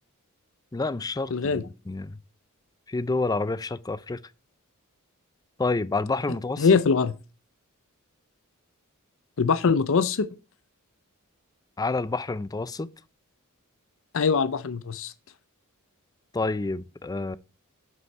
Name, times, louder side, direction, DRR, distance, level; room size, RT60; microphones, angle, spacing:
voice 1, 0.7-2.2 2.9-4.2 5.6-6.7 11.8-12.9 16.3-17.4, left 3 dB, 15° left, 0.4 m, -28 dB
voice 2, 1.3-1.6 6.6-7.1 9.4-10.3 14.1-15.1, left 5 dB, 65° left, 0.6 m, -22 dB
7.8 x 5.6 x 5.4 m
head